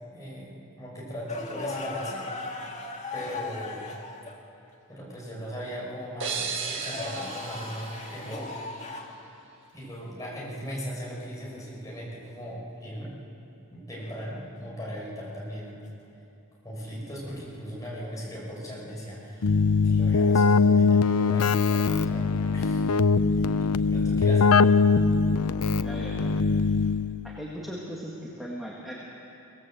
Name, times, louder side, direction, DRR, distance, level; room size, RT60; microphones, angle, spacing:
voice 1, 0.1-2.2 3.1-3.9 4.9-8.5 9.7-13.1 13.7-15.8 16.6-19.6 19.8-22.9 23.3-23.6 23.9-24.6, equal, 15° left, -5 dB, 5.9 m, -38 dB
sound 1, 1.3-4.4 6.5-9.2 11.5-11.7 14.0-14.3 17.2-17.4 19.5-19.8, left 3 dB, 30° left, 2.0 m, -38 dB
sound 2, 6.2-9.0, right 5 dB, 55° right, 1.6 m, -36 dB
Keyboard (musical), 19.4-27.3, left 4 dB, 90° left, 0.6 m, -22 dB
voice 2, 25.8-26.2 27.2-28.9, equal, ahead, -4 dB, 1.9 m, -38 dB
23.0 x 18.0 x 7.8 m, 2.8 s
head